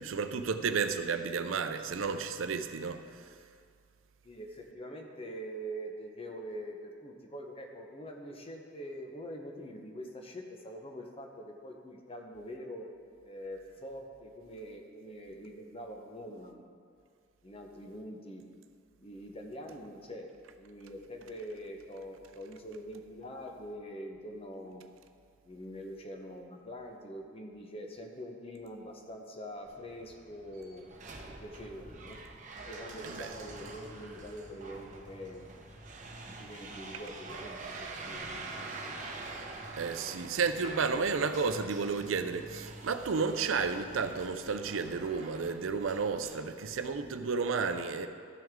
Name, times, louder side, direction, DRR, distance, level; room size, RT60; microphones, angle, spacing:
voice 1, 0.0-3.0 33.0-33.3 39.8-48.1, right 5 dB, 85° right, 9 dB, 0.5 m, -32 dB
voice 2, 4.2-12.9 13.2-16.6 17.4-18.4 19.0-20.3 20.6-24.8 25.4-30.8 31.2-32.2 32.5-35.5 36.1-39.0, equal, 30° left, 2 dB, 0.9 m, -44 dB
sound 1, 29.6-47.2, right 3 dB, 40° right, 0.9 m, -46 dB
13.5 x 6.2 x 3.7 m, 2.2 s
head